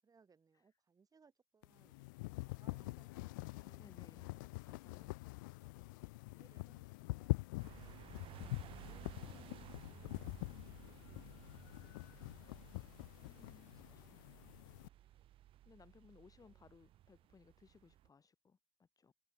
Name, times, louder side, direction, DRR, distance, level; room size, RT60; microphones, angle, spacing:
voice 1, 0.0-2.0 2.5-5.2 5.6-8.0 8.5-15.4 16.4-16.6, right 5 dB, 35° right, 7.9 m, -72 dB
sound 1, 1.6-14.9, left 23 dB, 85° left, 0.4 m, -45 dB
voice 2, 3.8-4.3 4.7-5.2 8.4-8.5 13.2-13.7 14.1-14.2 15.6-19.1, left 5 dB, 35° left, 7.4 m, -63 dB
sound 2, 7.6-18.1, right 13 dB, 60° right, 0.6 m, -57 dB
hypercardioid pair, 60°, 10 cm